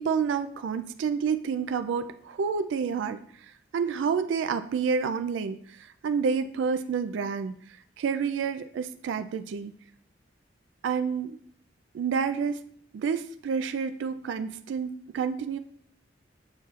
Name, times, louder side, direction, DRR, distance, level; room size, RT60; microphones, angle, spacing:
voice 1, 0.0-3.2 3.7-7.6 8.0-9.7 10.8-11.4 11.9-12.6 12.9-15.6, right 6 dB, 85° right, 11 dB, 0.3 m, -29 dB
7.6 x 5.6 x 2.4 m, 0.63 s
head